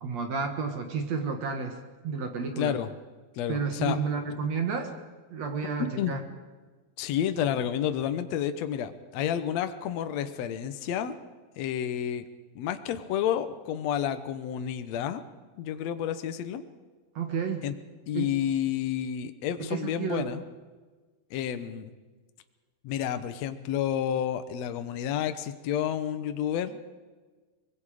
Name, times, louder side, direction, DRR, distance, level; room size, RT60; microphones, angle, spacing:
voice 1, 0.0-1.8 2.0-2.8 3.5-4.9 5.3-6.2 17.2-17.7 18.1-18.3 19.6-20.3, right 5 dB, 55° right, 5 dB, 2.3 m, -31 dB
voice 2, 2.6-2.9 3.3-4.0 6.0-6.2 7.0-11.2 11.6-12.2 12.5-15.2 15.6-16.6 17.6-17.7 18.1-20.4 21.3-21.9 22.8-26.9, left 10 dB, 85° left, 9 dB, 1.5 m, -30 dB
24.5 x 21.5 x 5.0 m, 1.3 s
omnidirectional pair, 4.6 m